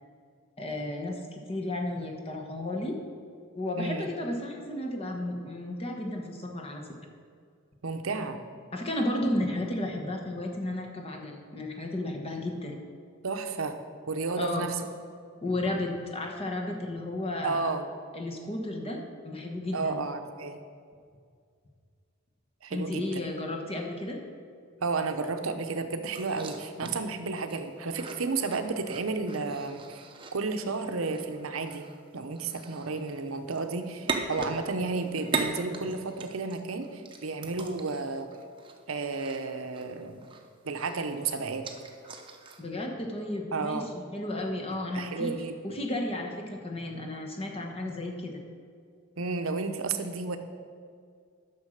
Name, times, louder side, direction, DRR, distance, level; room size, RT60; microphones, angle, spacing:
voice 1, 0.6-3.0 3.5-6.8 8.7-12.8 14.4-14.7 15.4-17.7 18.1-20.0 22.7-24.2 42.6-45.3 45.6-48.4, left 1 dB, 30° left, 2 dB, 1.2 m, -33 dB
voice 2, 3.8-4.1 7.8-8.4 13.2-13.8 14.1-14.7 17.4-17.9 19.7-20.6 22.6-23.2 24.8-31.9 32.1-38.3 38.9-40.2 40.6-41.7 43.5-43.9 44.9-45.5 49.2-50.4, right 3 dB, 85° right, 7 dB, 0.8 m, -32 dB
sound 1, 26.1-40.5 40.7-42.6, right 4 dB, 25° right, 0.8 m, -39 dB
9.8 x 6.3 x 6.5 m, 2.2 s
head